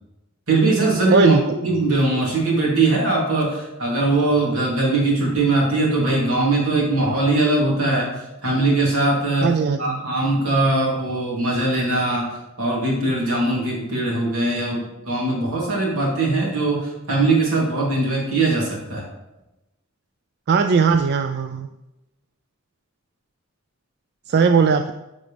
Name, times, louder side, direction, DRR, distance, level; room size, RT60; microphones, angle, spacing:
voice 1, 0.5-8.1 8.4-9.5 9.8-19.0, right 2 dB, 80° right, -4 dB, 3.1 m, -21 dB
voice 2, 9.4-10.0 20.5-21.7 24.3-24.9, right 5 dB, 50° right, 7 dB, 0.4 m, -18 dB
10.5 x 5.2 x 3.4 m, 0.97 s
head